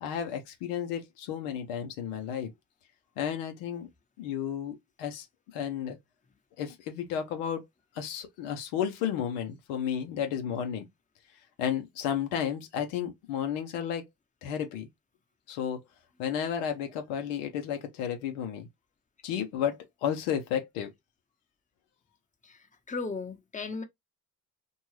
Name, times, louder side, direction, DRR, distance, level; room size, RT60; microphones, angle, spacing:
voice 1, 0.0-2.5 3.2-3.9 4.2-5.3 5.5-6.0 6.6-7.7 7.9-10.9 11.6-14.1 14.4-14.9 15.5-15.8 16.2-18.7 19.2-20.9, left 9 dB, 85° left, 0.8 m, -32 dB
voice 2, 22.9-23.8, left 4 dB, 15° left, 0.9 m, -35 dB
2.6 x 2.3 x 3.1 m
supercardioid pair, 60°, 46 cm